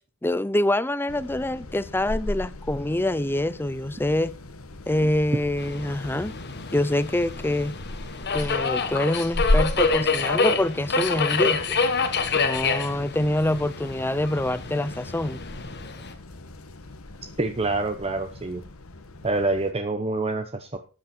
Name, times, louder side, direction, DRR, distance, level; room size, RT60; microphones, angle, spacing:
voice 1, 0.2-4.3 4.9-6.3 6.7-7.8 8.3-11.8 12.3-15.4, left 1 dB, 10° left, 0.6 m, -25 dB
sound 1, 1.1-19.7, left 1 dB, 70° left, 1.4 m, -35 dB
Subway metro underground, 5.6-16.1, left 4 dB, 50° left, 1.5 m, -27 dB
voice 2, 17.4-18.6 19.2-20.8, right 2 dB, 30° right, 1.0 m, -26 dB
13.5 x 8.8 x 4.5 m
head